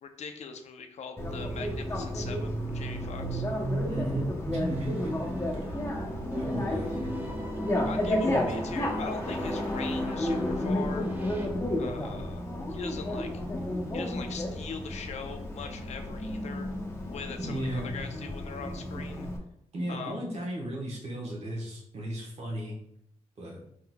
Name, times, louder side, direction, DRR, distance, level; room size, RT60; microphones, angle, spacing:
voice 1, 0.0-3.4 6.7-7.0 7.9-11.1 11.8-13.3 13.9-16.7 17.1-19.3 19.9-20.2, left 5 dB, 75° left, 6 dB, 0.5 m, -41 dB
Bicycle, 1.2-19.4, left 1 dB, 25° left, 0.8 m, -32 dB
voice 2, 3.9-5.3 6.4-7.1 17.4-17.9 19.7-22.8 23.4-23.6, right 1 dB, 65° right, -1 dB, 1.2 m, -34 dB
sound 1, 4.7-6.0 6.3-11.5, equal, 15° right, 0.7 m, -38 dB
4.4 x 3.8 x 2.2 m, 0.72 s
wide cardioid pair, 125°, 12 cm